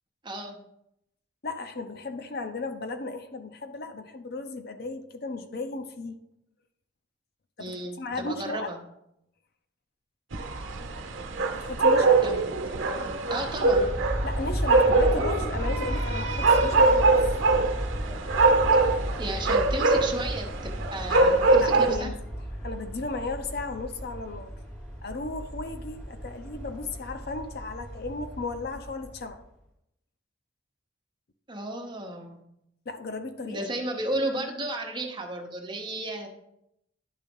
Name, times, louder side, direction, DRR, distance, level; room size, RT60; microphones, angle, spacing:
voice 1, 0.2-0.6 7.6-8.8 12.2-12.5 13.3-13.9 19.2-22.1 31.5-32.4 33.4-36.3, right 1 dB, 25° right, 2 dB, 1.1 m, -33 dB
voice 2, 1.4-6.2 7.6-8.7 11.5-12.2 14.2-17.2 21.6-22.2 22.6-24.5 25.0-29.4 32.9-33.7, left 3 dB, 55° left, 7 dB, 0.6 m, -35 dB
sound 1, 10.3-22.0, right 3 dB, 85° right, 0.9 m, -23 dB
Aircraft, 13.5-29.4, equal, 10° left, 2.4 m, -34 dB
11.0 x 3.7 x 5.3 m, 0.80 s
head